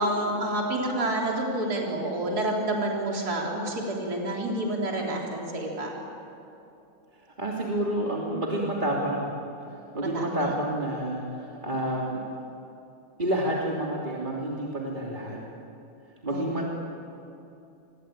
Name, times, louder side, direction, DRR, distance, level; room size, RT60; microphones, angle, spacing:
voice 1, 0.0-5.9 10.1-10.3 16.3-16.4, right 1 dB, 45° right, -1 dB, 4.4 m, -28 dB
voice 2, 7.1-9.3 9.7-12.3 13.2-15.4 16.2-16.7, right 1 dB, 20° right, -3 dB, 3.0 m, -29 dB
27.0 x 22.5 x 9.0 m, 2.8 s
omnidirectional pair, 2.4 m